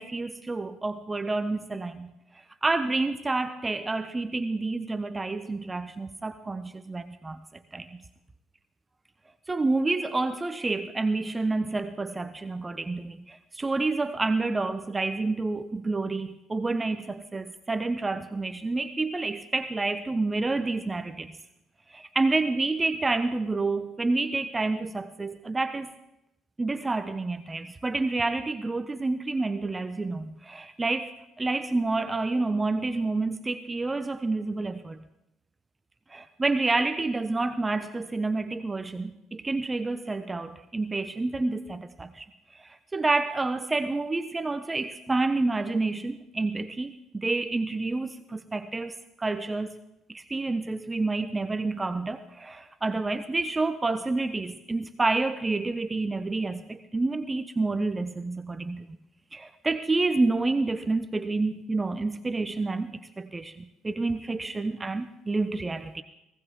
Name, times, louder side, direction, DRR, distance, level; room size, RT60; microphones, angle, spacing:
voice 1, 0.0-7.4 7.7-8.0 9.5-21.3 21.9-25.9 26.6-31.1 31.4-35.0 36.1-49.8 50.1-58.9 59.3-66.0, right 3 dB, 20° right, 11 dB, 0.8 m, -29 dB
19.5 x 16.5 x 3.6 m, 0.86 s
hypercardioid pair, 60°, 0 cm